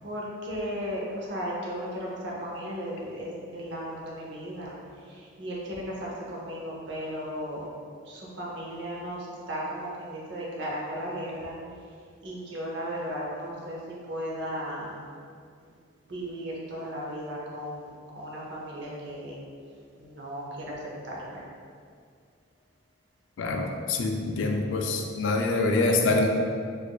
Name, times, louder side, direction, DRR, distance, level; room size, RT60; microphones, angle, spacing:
voice 1, 0.0-4.7 5.1-7.7 8.0-11.6 12.2-15.0 16.1-19.4 20.0-20.8 21.0-21.4, equal, 60° right, -4 dB, 0.7 m, -35 dB
voice 2, 23.4-26.3, left 3 dB, 70° left, 2 dB, 0.4 m, -25 dB
4.5 x 2.5 x 2.2 m, 2.2 s
head